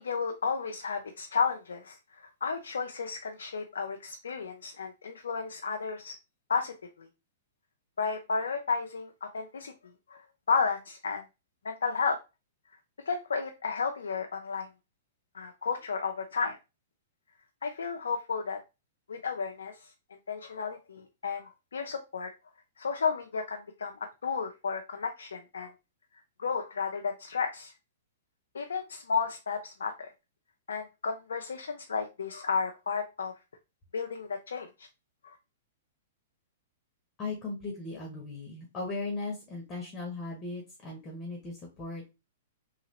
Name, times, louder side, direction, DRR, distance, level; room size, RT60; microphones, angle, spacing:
voice 1, 0.0-1.9 2.4-6.1 6.5-7.1 8.0-9.7 10.1-10.2 10.5-11.2 11.6-12.2 13.1-14.7 15.3-16.6 17.6-18.6 19.1-19.7 20.3-22.3 22.8-23.9 24.2-25.7 26.4-27.7 28.5-30.1 30.7-33.3 33.9-34.7, left 5 dB, 90° left, 4 dB, 0.4 m, -32 dB
voice 2, 37.2-42.1, left 3 dB, 20° left, -1 dB, 1.1 m, -37 dB
3.2 x 2.8 x 2.8 m, 0.26 s
hypercardioid pair, 130°, 0 cm